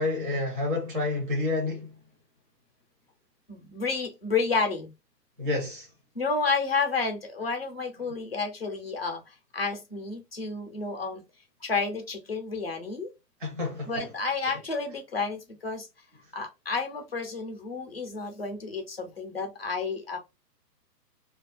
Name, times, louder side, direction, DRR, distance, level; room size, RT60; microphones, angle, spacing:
voice 1, 0.0-1.9 5.4-5.9 8.0-8.1 13.4-14.2 14.4-14.6, left 2 dB, 30° right, 0.6 m, -30 dB
voice 2, 3.5-4.9 6.1-11.2 11.6-13.1 13.9-15.9 16.3-20.2, left 4 dB, 40° left, 0.5 m, -31 dB
2.3 x 2.3 x 2.2 m
hypercardioid pair, 180°, 50 cm